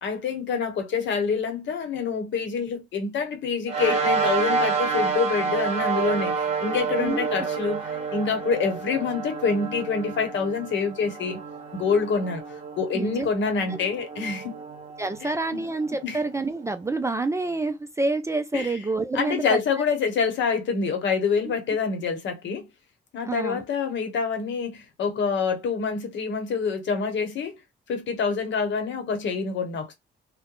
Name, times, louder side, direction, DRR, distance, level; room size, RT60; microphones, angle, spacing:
voice 1, 0.0-11.4 11.7-12.4 12.7-14.6 15.2-15.6 16.0-16.2 18.5-18.7 19.1-22.7 23.1-27.6 27.9-29.9, left 5 dB, 70° left, 0.9 m, -26 dB
sound 1, 3.7-16.4, right 5 dB, 30° right, 1.2 m, -29 dB
voice 2, 12.9-13.3 13.7-13.8 15.0-19.6 21.4-21.5 23.3-23.6, right 3 dB, 15° right, 0.3 m, -28 dB
2.3 x 2.1 x 2.9 m
cardioid pair, 90°, 20 cm